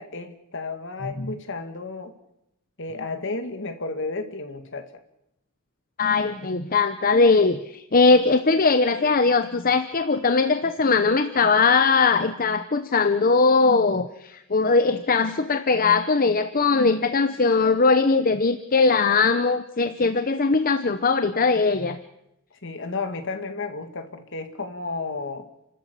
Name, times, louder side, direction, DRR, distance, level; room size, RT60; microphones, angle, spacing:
voice 1, 0.0-2.1 2.8-4.9 22.5-25.5, left 3 dB, 60° left, 8 dB, 2.2 m, -32 dB
voice 2, 6.0-22.0, left 4 dB, 40° left, 10 dB, 0.8 m, -20 dB
29.5 x 13.5 x 8.4 m, 0.85 s
head